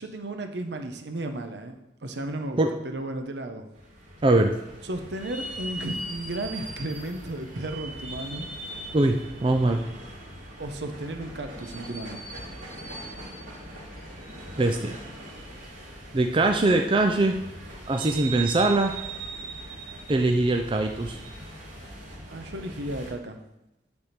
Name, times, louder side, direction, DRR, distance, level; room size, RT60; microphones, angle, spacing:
voice 1, 0.0-3.7 4.8-8.5 10.6-12.2 22.3-23.4, right 1 dB, 70° right, 6 dB, 0.8 m, -34 dB
sound 1, 3.7-23.1, right 2 dB, 45° right, 2.7 m, -40 dB
voice 2, 4.2-4.5 8.9-9.8 14.6-15.0 16.1-17.4 17.9-18.9 20.1-21.2, right 2 dB, 30° right, 4 dB, 0.4 m, -22 dB
9.6 x 3.5 x 5.8 m, 0.95 s
head